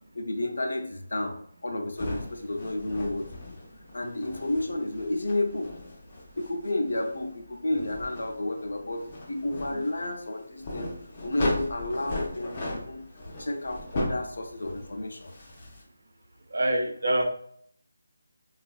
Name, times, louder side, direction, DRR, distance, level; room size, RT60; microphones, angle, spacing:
voice 1, 0.1-3.3 3.9-5.8 6.4-10.9 11.2-13.0 13.4-15.3, left 2 dB, 65° left, 4 dB, 0.5 m, -31 dB
sound 1, 2.0-15.8, left 1 dB, 20° left, 0.4 m, -38 dB
voice 2, 16.5-17.2, right 1 dB, 55° right, 3 dB, 0.5 m, -25 dB
3.6 x 2.3 x 2.3 m, 0.65 s
figure-of-eight pair, 180°, 0 cm